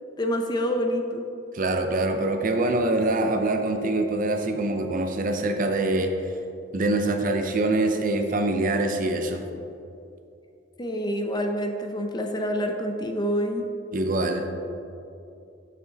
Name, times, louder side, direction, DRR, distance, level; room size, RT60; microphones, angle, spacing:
voice 1, 0.2-1.2 10.8-13.6, equal, 25° left, 4 dB, 0.6 m, -27 dB
voice 2, 1.5-6.1 6.7-9.4 13.9-14.5, right 2 dB, 45° right, 5 dB, 0.7 m, -24 dB
9.6 x 6.3 x 4.0 m, 2.6 s
head